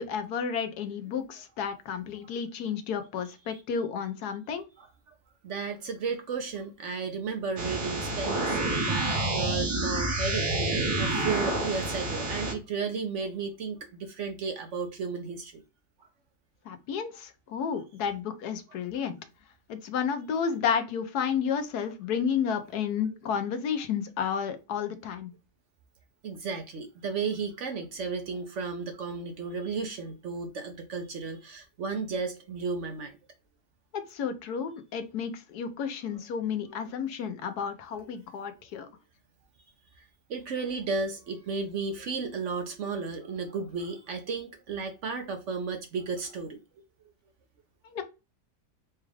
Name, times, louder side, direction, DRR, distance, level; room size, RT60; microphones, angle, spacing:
voice 1, 0.0-4.6 16.6-19.2 19.7-25.3 33.9-38.9 47.9-48.0, left 7 dB, 80° left, 1.3 m, -31 dB
voice 2, 5.4-15.6 26.2-33.2 36.6-36.7 38.0-38.1 40.3-46.6, right 4 dB, 60° right, 0.9 m, -34 dB
sound 1, 7.6-12.5, right 2 dB, 90° right, 1.8 m, -28 dB
4.4 x 2.4 x 3.2 m
omnidirectional pair, 1.7 m